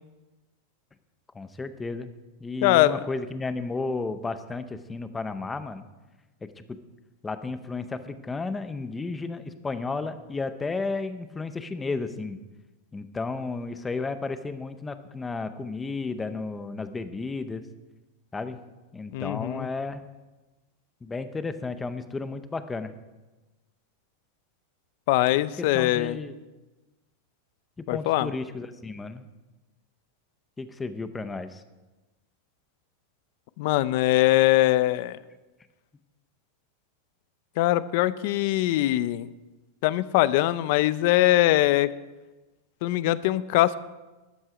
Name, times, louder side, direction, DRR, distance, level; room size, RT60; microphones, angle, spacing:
voice 1, 1.3-2.1 2.4-5.9 6.4-6.8 7.2-12.4 12.9-17.6 18.3-18.6 18.9-20.0 21.0-22.9 25.3-26.4 27.8-29.3 30.6-31.6, left 3 dB, 10° left, 10 dB, 0.6 m, -33 dB
voice 2, 2.6-3.0 19.1-19.7 25.1-26.2 27.9-28.3 33.6-35.2 37.6-39.3 39.8-41.9 42.8-43.8, left 15 dB, 50° left, 16 dB, 0.5 m, -22 dB
13.5 x 11.0 x 5.0 m, 1.1 s
supercardioid pair, 165°, 0 cm